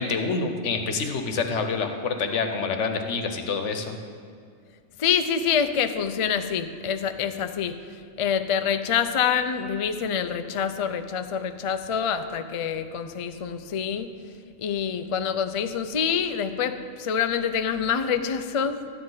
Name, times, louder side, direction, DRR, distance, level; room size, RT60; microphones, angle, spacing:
voice 1, 0.0-4.0, left 4 dB, 75° left, 6 dB, 1.2 m, -27 dB
voice 2, 5.0-7.8 8.2-14.1 14.6-18.8, left 7 dB, 50° left, 9 dB, 0.3 m, -26 dB
13.0 x 9.6 x 4.0 m, 2.2 s
omnidirectional pair, 1.2 m